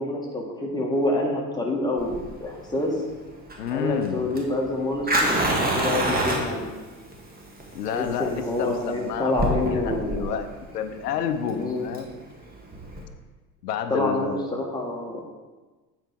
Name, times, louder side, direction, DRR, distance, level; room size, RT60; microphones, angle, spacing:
voice 1, 0.0-2.9 3.7-6.6 7.9-10.4 11.5-11.9 13.9-15.2, left 2 dB, 10° left, -3 dB, 2.0 m, -27 dB
Fire, 2.0-13.0, right 1 dB, 20° right, 1.7 m, -28 dB
voice 2, 3.6-4.3 7.7-12.2 13.6-14.7, left 8 dB, 80° left, 9 dB, 0.8 m, -30 dB
8.5 x 4.9 x 4.5 m, 1.3 s
hypercardioid pair, 70°, 48 cm